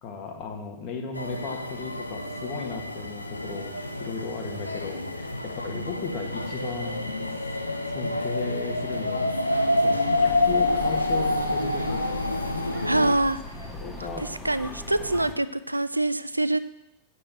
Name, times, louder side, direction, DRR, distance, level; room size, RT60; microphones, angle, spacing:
voice 1, 0.0-7.2 7.9-12.0 13.8-14.2 15.0-15.1, left 5 dB, 40° left, 3 dB, 2.0 m, -36 dB
sound 1, 1.2-13.1, left 2 dB, 85° left, 0.8 m, -28 dB
sound 2, 10.2-15.3, left 1 dB, 15° left, 1.6 m, -39 dB
voice 2, 12.8-13.4 14.4-16.6, right 2 dB, 85° right, 15 dB, 0.4 m, -24 dB
8.7 x 6.4 x 8.1 m, 0.87 s
figure-of-eight pair, 90°, 0 cm